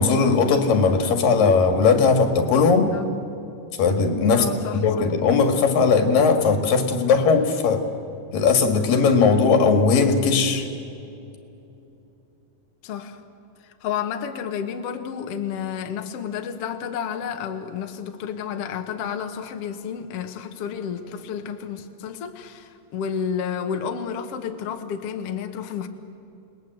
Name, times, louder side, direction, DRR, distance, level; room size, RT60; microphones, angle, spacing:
voice 1, 0.0-2.9 3.8-4.5 4.7-7.8 8.3-10.7, left 5 dB, 85° left, 3.6 m, -18 dB
voice 2, 2.9-3.3 4.3-5.0 12.8-13.2 13.6-25.9, left 7 dB, 55° left, 1.9 m, -31 dB
29.0 x 20.0 x 7.9 m
omnidirectional pair, 3.8 m